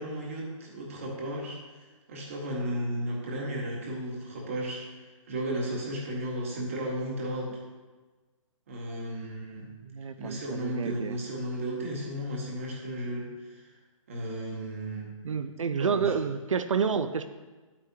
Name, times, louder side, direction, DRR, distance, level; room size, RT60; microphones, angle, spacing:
voice 1, 0.0-1.6 2.1-7.6 8.7-9.7 10.2-13.6 14.1-15.1 15.8-16.1, right 1 dB, 25° right, -1 dB, 1.4 m, -34 dB
voice 2, 9.8-11.2 15.2-17.3, right 6 dB, 70° right, 11 dB, 0.6 m, -29 dB
10.5 x 8.6 x 2.8 m, 1.3 s
hypercardioid pair, 180°, 17 cm